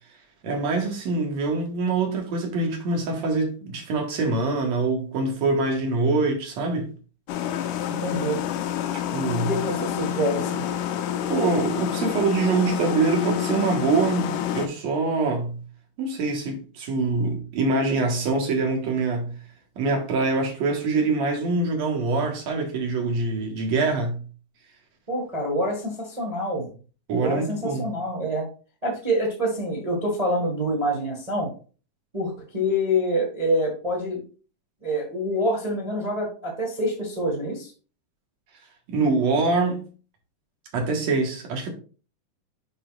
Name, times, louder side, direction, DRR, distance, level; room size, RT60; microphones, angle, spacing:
voice 1, 0.4-6.9 9.1-9.5 11.3-15.6 16.0-19.3 19.8-24.2 27.1-27.9 38.9-39.9 40.7-41.7, right 3 dB, 60° right, 2.5 m, -24 dB
sound 1, 7.3-14.7, left 10 dB, 80° left, 2.1 m, -28 dB
voice 2, 7.9-8.4 9.3-10.7 25.1-26.7 27.1-28.5 28.8-31.5 32.1-34.2 34.8-37.7, equal, 25° right, 0.8 m, -26 dB
10.0 x 3.9 x 2.4 m
omnidirectional pair, 3.8 m